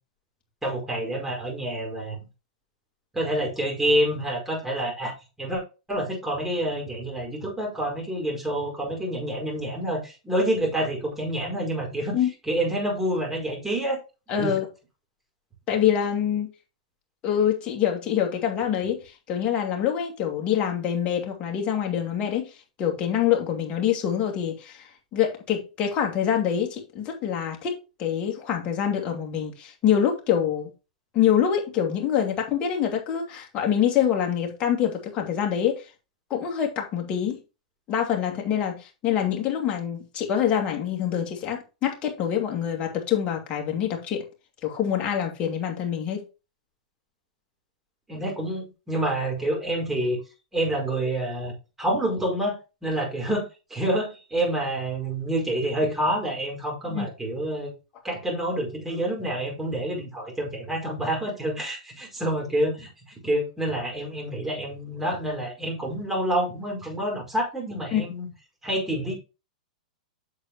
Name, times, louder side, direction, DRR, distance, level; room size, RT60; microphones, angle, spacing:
voice 1, 0.6-2.2 3.1-5.1 5.4-5.6 5.9-12.2 12.5-14.0 14.4-14.5 48.1-50.2 50.5-51.5 51.8-52.6 52.8-57.7 58.0-68.3 68.6-69.2, right 1 dB, 10° right, 4.9 m, -27 dB
voice 2, 14.3-14.7 15.7-16.5 17.2-22.5 22.8-30.7 31.1-35.8 36.3-37.4 37.9-44.2 44.6-46.2 56.9-57.1 67.9-68.0, left 9 dB, 30° left, 2.5 m, -25 dB
8.1 x 6.8 x 3.0 m
hypercardioid pair, 105°, 4 cm